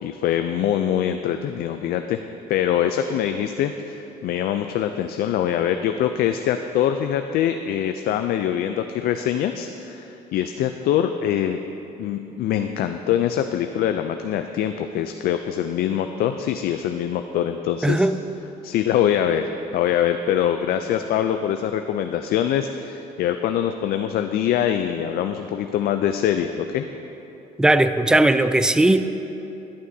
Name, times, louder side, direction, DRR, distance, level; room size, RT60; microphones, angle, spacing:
voice 1, 0.0-2.2 2.5-11.6 12.0-18.1 18.6-26.9, left 10 dB, 65° left, 7 dB, 0.4 m, -24 dB
voice 2, 17.8-18.2 27.6-29.0, right 1 dB, 5° right, 11 dB, 0.3 m, -17 dB
11.5 x 11.0 x 2.7 m, 3.0 s
cardioid pair, 110°, 17 cm